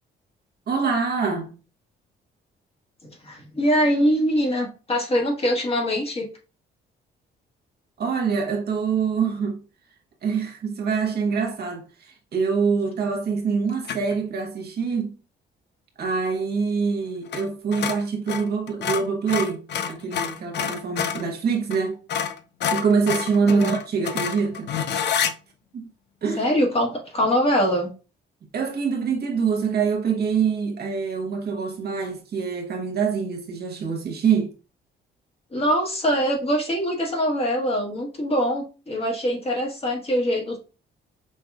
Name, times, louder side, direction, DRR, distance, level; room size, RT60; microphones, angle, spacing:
voice 1, 0.7-1.5 8.0-9.6 10.2-15.1 16.0-22.0 22.7-24.7 25.7-25.9 26.2-26.5 28.5-34.5, right 5 dB, 55° right, 1.1 m, -25 dB
voice 2, 3.2-6.3 23.5-23.7 26.4-27.9 35.5-40.6, equal, 30° left, 1.6 m, -23 dB
sound 1, 13.8-14.2 17.3-17.5 17.7-21.3 21.7-21.8 22.1-25.3, left 7 dB, 60° left, 0.5 m, -27 dB
5.4 x 3.1 x 2.3 m
cardioid pair, 90°, 20 cm